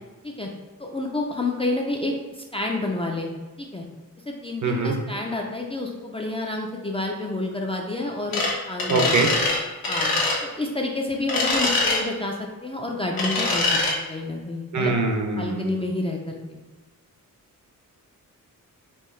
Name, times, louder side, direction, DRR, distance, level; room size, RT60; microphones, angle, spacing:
voice 1, 0.8-3.3 3.6-3.8 4.3-9.3 9.9-10.1 10.4-14.9 15.4-16.6, left 2 dB, 15° left, 0 dB, 0.4 m, -29 dB
voice 2, 4.6-4.9 8.9-9.3 14.7-15.8, right 3 dB, 60° right, 2 dB, 0.7 m, -23 dB
sound 1, 8.3-8.5 8.8-9.6 9.8-10.4 11.3-12.0 13.2-13.9, left 3 dB, 80° left, 1.1 m, -23 dB
4.6 x 3.1 x 3.1 m, 1.2 s
wide cardioid pair, 160°, 34 cm